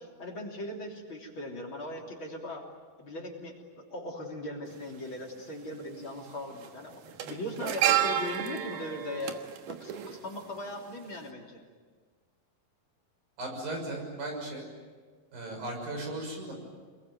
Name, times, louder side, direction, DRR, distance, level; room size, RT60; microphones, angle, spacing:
voice 1, 0.0-2.7 3.0-9.4 9.7-11.6, left 1 dB, 35° left, 0 dB, 3.8 m, -39 dB
sound 1, 4.7-4.8 6.0-6.3 6.5-10.8 11.1-11.3, right 11 dB, 70° right, 2.8 m, -31 dB
voice 2, 13.4-14.7 15.3-16.5, right 2 dB, 90° right, 2 dB, 8.2 m, -36 dB
27.5 x 22.0 x 9.3 m, 1.5 s
omnidirectional pair, 3.9 m